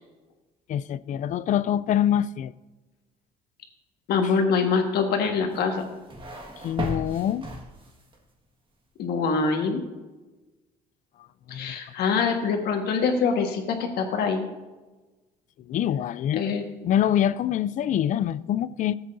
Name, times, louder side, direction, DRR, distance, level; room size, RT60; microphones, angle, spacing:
voice 1, 0.7-2.5 6.6-7.4 11.5-11.7 15.7-16.4 16.8-18.9, left 10 dB, 50° left, 0.4 m, -25 dB
voice 2, 4.1-5.9 9.0-9.8 11.5-14.5 16.4-16.6, left 5 dB, 75° left, 1.5 m, -24 dB
sound 1, 5.5-8.2, right 1 dB, 30° right, 1.7 m, -36 dB
15.0 x 7.8 x 2.7 m
cardioid pair, 110°, 17 cm